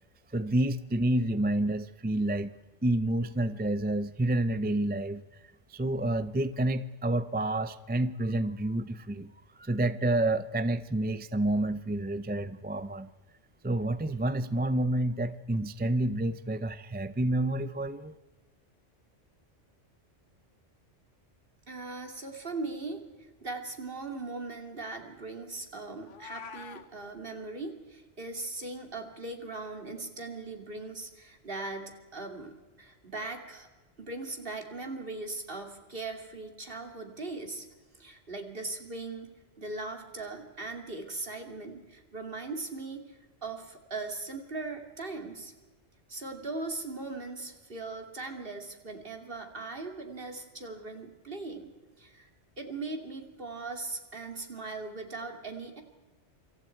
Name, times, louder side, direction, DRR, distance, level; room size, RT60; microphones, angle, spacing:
voice 1, 0.3-2.5 2.8-5.2 5.7-9.3 9.6-13.1 13.6-18.1, right 1 dB, 10° right, 13 dB, 0.5 m, -29 dB
voice 2, 21.7-33.7 34.0-37.7 38.0-45.5 46.1-52.3 52.6-55.8, right 3 dB, 50° right, 4 dB, 3.0 m, -39 dB
Meow, 26.0-26.8, left 6 dB, 85° left, 1.5 m, -44 dB
27.0 x 26.5 x 4.6 m, 1.2 s
omnidirectional pair, 1.2 m